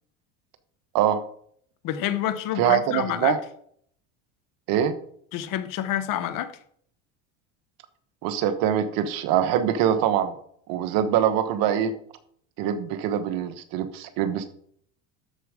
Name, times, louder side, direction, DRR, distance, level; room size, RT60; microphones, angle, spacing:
voice 1, 1.8-3.4 5.3-6.5, left 11 dB, 55° left, 1.0 m, -28 dB
voice 2, 2.6-3.4 4.7-5.0 8.2-10.4 10.7-11.9 12.6-14.5, right 9 dB, 60° right, 1.2 m, -23 dB
13.0 x 4.7 x 4.9 m
supercardioid pair, 95°, 38 cm